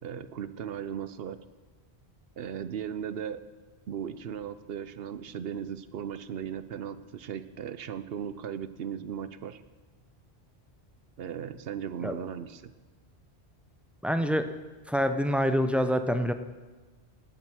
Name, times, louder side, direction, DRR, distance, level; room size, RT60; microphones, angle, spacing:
voice 1, 0.0-1.4 2.4-3.4 3.9-9.6 11.2-12.7, right 8 dB, 65° right, 13 dB, 0.9 m, -37 dB
voice 2, 14.0-14.5 14.9-16.3, equal, ahead, 9 dB, 0.4 m, -26 dB
18.5 x 7.7 x 6.2 m, 1.3 s
omnidirectional pair, 1.1 m